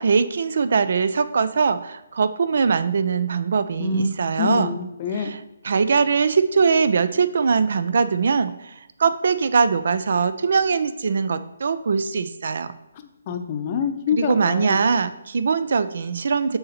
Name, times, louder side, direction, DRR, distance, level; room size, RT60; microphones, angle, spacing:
voice 1, 0.0-4.8 5.1-8.7 9.0-12.7 14.1-16.6, right 5 dB, 60° right, 13 dB, 0.4 m, -21 dB
voice 2, 3.8-5.3 13.3-14.8, left 5 dB, 35° left, 7 dB, 0.6 m, -26 dB
6.5 x 4.2 x 4.2 m, 0.93 s
hypercardioid pair, 150°, 0 cm